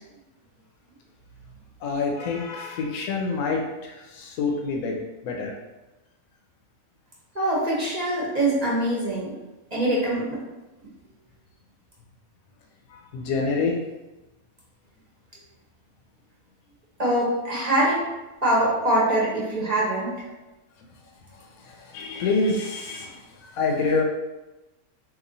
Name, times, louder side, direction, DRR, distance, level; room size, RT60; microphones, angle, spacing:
voice 1, 1.8-5.0 5.2-5.5 12.9-13.8 21.9-23.2 23.5-24.0, left 4 dB, 80° left, 0 dB, 1.0 m, -26 dB
voice 2, 7.3-9.3 9.7-10.2 17.0-18.0 18.4-20.1, right 1 dB, 35° right, -6 dB, 0.9 m, -23 dB
3.0 x 2.5 x 3.8 m, 1.1 s
omnidirectional pair, 1.5 m